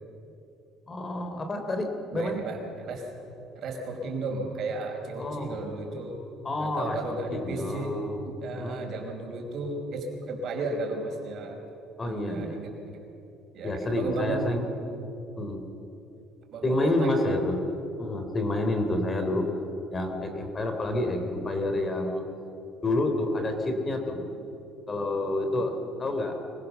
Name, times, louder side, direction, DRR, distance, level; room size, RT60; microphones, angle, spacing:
voice 1, 0.9-2.4 5.2-5.6 6.4-8.8 12.0-12.6 13.6-14.6 15.4-15.6 16.6-17.6 18.0-19.6 19.9-22.2 22.8-24.5 24.9-26.4, left 1 dB, 25° left, 5 dB, 3.3 m, -29 dB
voice 2, 2.1-3.1 3.5-6.2 6.6-11.6 12.1-12.7 13.5-14.5 16.5-17.4, right 2 dB, 55° right, 2 dB, 5.1 m, -34 dB
24.5 x 22.5 x 7.0 m, 3.0 s
cardioid pair, 110°, 0 cm